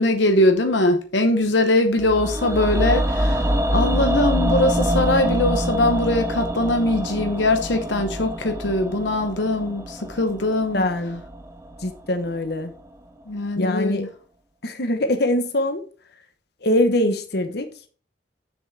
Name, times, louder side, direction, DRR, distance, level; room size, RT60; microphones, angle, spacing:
voice 1, 0.0-3.4 3.7-10.9 13.3-14.1, left 2 dB, 85° left, 1.0 m, -21 dB
sound 1, 2.0-12.1 12.4-12.5, equal, 15° right, 0.7 m, -25 dB
voice 2, 10.7-11.2 11.8-12.7 13.6-14.1 14.6-15.8 16.6-17.7, left 1 dB, 60° left, 1.1 m, -23 dB
7.2 x 6.8 x 4.2 m
head